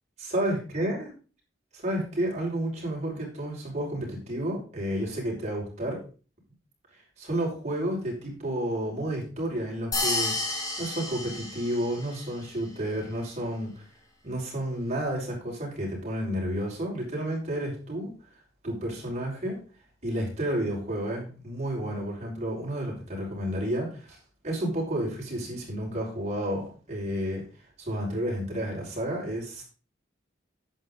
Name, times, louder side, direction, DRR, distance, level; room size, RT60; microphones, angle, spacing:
voice 1, 0.2-1.1 1.7-6.0 7.2-13.8 14.2-18.1 18.6-19.6 20.0-24.2 24.4-27.4 27.8-29.6, right 1 dB, 35° right, -3 dB, 5.9 m, -31 dB
sound 1, 9.9-12.2, left 2 dB, 20° left, 3.4 m, -30 dB
11.0 x 9.0 x 4.0 m, 0.37 s
head